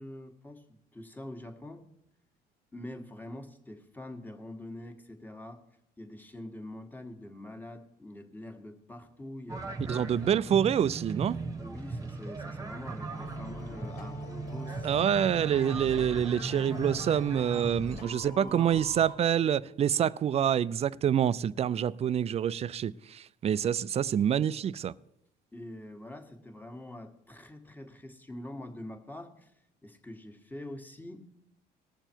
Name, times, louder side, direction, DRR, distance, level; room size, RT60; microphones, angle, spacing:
voice 1, 0.0-1.8 2.7-5.6 6.0-10.0 11.6-14.9 15.2-15.5 17.5-18.7 25.5-29.5 29.8-31.3, left 1 dB, 10° left, 1.6 m, -45 dB
sound 1, 9.5-18.0, right 3 dB, 20° right, 1.2 m, -38 dB
voice 2, 9.9-11.4 14.8-24.9, right 9 dB, 40° right, 0.4 m, -27 dB
sound 2, 13.1-19.1, left 3 dB, 65° left, 2.3 m, -45 dB
19.5 x 6.9 x 4.5 m
cardioid pair, 110°, 17 cm